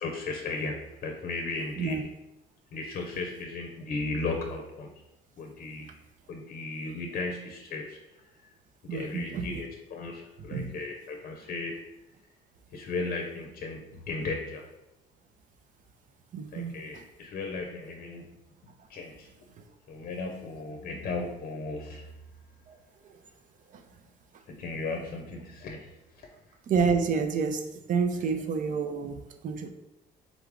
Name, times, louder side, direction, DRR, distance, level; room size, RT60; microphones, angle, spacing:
voice 1, 0.0-2.0 2.7-4.9 5.4-5.9 6.3-8.0 8.8-11.8 12.7-14.6 16.5-18.3 18.9-19.3 19.9-22.1 24.5-25.9, left 3 dB, 55° left, 4 dB, 0.6 m, -35 dB
voice 2, 1.8-2.1 8.9-9.6 10.4-10.8 16.3-17.0 22.7-22.8 23.7-23.8 26.7-29.7, right 5 dB, 50° right, 7 dB, 0.5 m, -29 dB
3.7 x 3.5 x 3.6 m, 0.92 s
cardioid pair, 110°, 17 cm